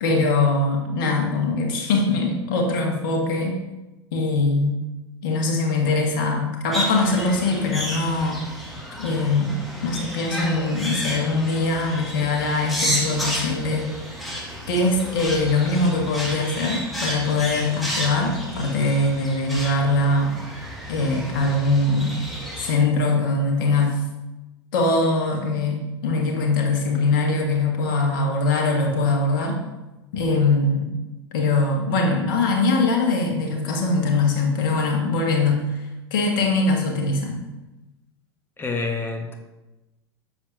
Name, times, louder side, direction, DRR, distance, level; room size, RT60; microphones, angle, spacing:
voice 1, 0.0-3.6 4.1-4.8 5.2-8.5 9.0-13.9 14.7-20.3 20.9-22.2 22.6-24.0 24.7-29.6 30.1-30.9 31.3-35.8 36.1-37.4, left 3 dB, 55° left, 1 dB, 1.6 m, -22 dB
sound 1, 6.7-22.7, equal, ahead, 1.8 m, -32 dB
voice 2, 38.6-39.3, left 3 dB, 15° left, 4 dB, 1.1 m, -27 dB
7.3 x 6.9 x 2.7 m, 1.1 s
figure-of-eight pair, 85°, 13 cm